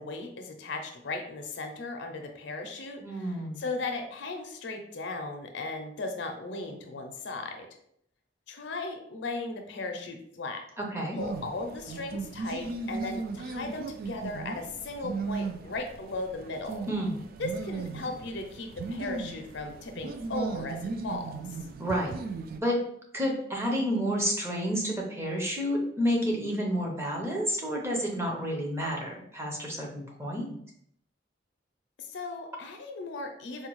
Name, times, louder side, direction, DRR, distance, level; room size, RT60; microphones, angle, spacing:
voice 1, 0.0-7.7 8.5-10.6 11.1-16.9 17.4-21.4 32.0-33.7, left 2 dB, 70° left, 5 dB, 0.5 m, -37 dB
voice 2, 3.0-3.6 10.8-11.2 16.9-17.2 21.8-22.1 22.6-22.8 23.1-30.6, equal, 15° right, -2 dB, 0.7 m, -30 dB
sound 1, 11.2-22.6, right 4 dB, 50° right, 0.3 m, -37 dB
4.2 x 2.3 x 3.0 m, 0.69 s
head